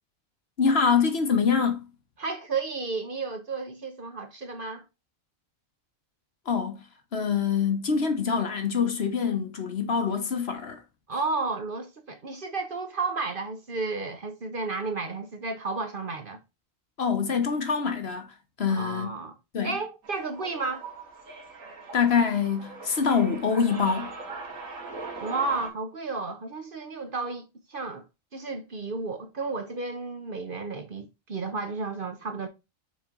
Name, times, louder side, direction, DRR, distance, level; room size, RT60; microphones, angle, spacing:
voice 1, 0.6-1.8 6.5-6.8 7.1-10.8 17.0-18.3 18.6-19.1 19.5-19.7 21.9-24.1, left 6 dB, 55° left, 1.2 m, -25 dB
voice 2, 2.2-4.8 11.1-16.4 18.7-19.4 19.6-20.8 25.2-28.0 28.3-32.5, right 3 dB, 45° right, 1.0 m, -32 dB
sound 1, 20.0-25.7, right 4 dB, 80° right, 1.9 m, -41 dB
6.2 x 4.4 x 3.7 m
omnidirectional pair, 1.4 m